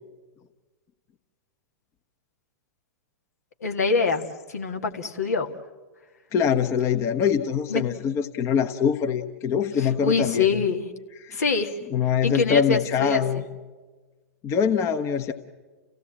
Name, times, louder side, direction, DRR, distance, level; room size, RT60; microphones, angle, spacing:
voice 1, 3.6-5.5 7.7-8.0 9.8-10.9 11.3-11.7 12.2-13.2, left 4 dB, 75° left, 5 dB, 1.9 m, -25 dB
voice 2, 6.3-10.6 11.2-11.4 11.9-13.4 14.4-15.3, left 7 dB, 35° left, 8 dB, 1.1 m, -23 dB
29.5 x 16.5 x 8.8 m, 1.3 s
figure-of-eight pair, 100°, 9 cm